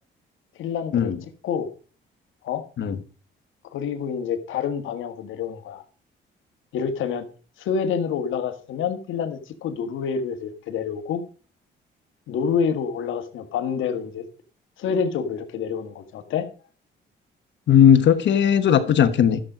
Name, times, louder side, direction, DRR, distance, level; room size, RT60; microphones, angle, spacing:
voice 1, 0.6-1.7 2.4-2.6 3.7-5.8 6.7-7.2 7.6-11.2 12.3-14.2 14.8-16.5, left 6 dB, 80° left, 1.6 m, -27 dB
voice 2, 17.7-19.4, left 9 dB, 65° left, 1.4 m, -17 dB
12.0 x 7.5 x 5.1 m
cardioid pair, 90°, 20 cm